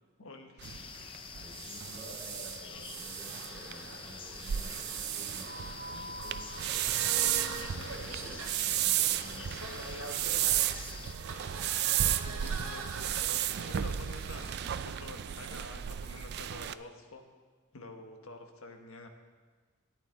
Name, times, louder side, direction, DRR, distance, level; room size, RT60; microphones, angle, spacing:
voice 1, 0.2-0.7 7.7-8.1 12.2-17.2 17.7-19.1, left 2 dB, 80° left, 4 dB, 1.3 m, -48 dB
sound 1, 0.6-11.1, left 6 dB, 25° left, 0.4 m, -47 dB
sound 2, 0.6-16.7, right 12 dB, 50° right, 0.3 m, -34 dB
voice 2, 1.3-11.4 14.3-14.4, equal, 15° right, -11 dB, 4.3 m, -52 dB
sound 3, 1.3-15.1, right 3 dB, 80° right, 1.5 m, -44 dB
13.0 x 11.0 x 3.8 m, 1.4 s
head